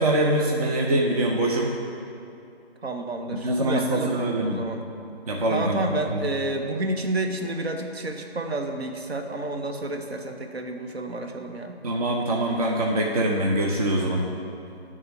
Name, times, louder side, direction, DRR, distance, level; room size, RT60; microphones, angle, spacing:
voice 1, 0.0-1.7 3.3-4.6 5.3-5.8 6.1-6.2 11.8-14.2, right 1 dB, 35° right, -1 dB, 0.6 m, -24 dB
voice 2, 2.8-4.8 5.5-11.8, right 2 dB, 75° right, 5 dB, 0.9 m, -30 dB
8.5 x 3.6 x 6.8 m, 2.5 s
figure-of-eight pair, 155°, 31 cm